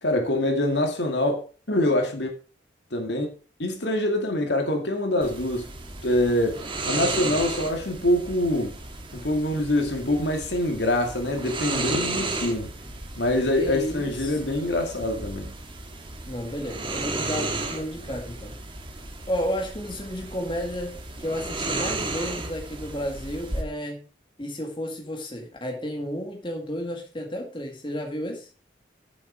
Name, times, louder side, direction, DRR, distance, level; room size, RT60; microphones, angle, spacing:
voice 1, 0.0-2.3 2.9-3.3 3.6-5.7 6.0-8.7 9.1-12.7 13.2-15.5 17.4-17.5, left 1 dB, 65° left, 2.2 m, -25 dB
sound 1, 5.2-23.6, right 2 dB, 25° right, 1.5 m, -34 dB
voice 2, 13.5-14.4 16.3-18.5 19.3-24.0 24.4-28.5, equal, 25° left, 1.9 m, -32 dB
8.9 x 7.3 x 5.0 m
head